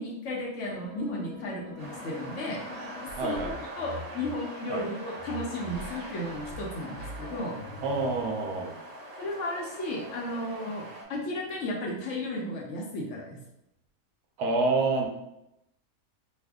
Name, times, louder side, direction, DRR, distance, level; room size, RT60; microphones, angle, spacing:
voice 1, 0.0-2.6 3.2-3.4 3.8-7.5 9.2-13.4, left 1 dB, 60° left, -2 dB, 0.9 m, -34 dB
sound 1, 0.6-4.3 5.2-8.7, left 3 dB, 90° left, 1.2 m, -44 dB
sound 2, 1.8-11.0, right 1 dB, 55° right, 0.4 m, -43 dB
voice 2, 3.2-3.5 4.7-4.8 7.8-8.7 14.4-15.1, right 3 dB, 90° right, 2 dB, 1.1 m, -27 dB
3.2 x 2.1 x 3.4 m, 0.84 s
omnidirectional pair, 1.5 m